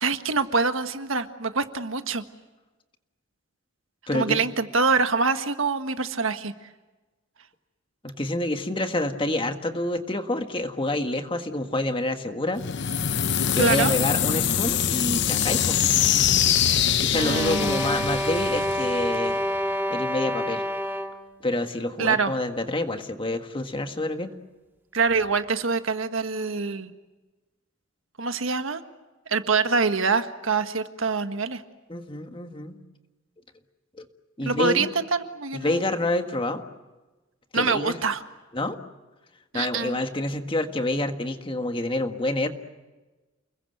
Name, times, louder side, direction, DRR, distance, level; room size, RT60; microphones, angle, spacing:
voice 1, 0.0-2.2 4.1-6.5 13.6-13.9 17.2-17.8 22.0-22.3 24.9-26.9 28.2-28.8 29.3-31.6 34.4-35.8 37.5-38.2 39.5-40.0, right 4 dB, 75° right, 8 dB, 1.6 m, -25 dB
voice 2, 4.1-4.4 8.0-12.6 13.5-15.8 17.0-19.4 19.9-20.6 21.4-24.3 31.9-32.8 34.0-34.1 34.4-34.9 35.5-36.6 37.5-38.0 38.5-38.8 39.5-42.5, left 1 dB, 25° left, 6 dB, 1.7 m, -28 dB
sound 1, 12.6-19.4, left 9 dB, 60° left, 0.9 m, -24 dB
sound 2, 17.2-21.3, equal, 10° right, 2.1 m, -28 dB
30.0 x 21.5 x 7.9 m, 1.2 s
head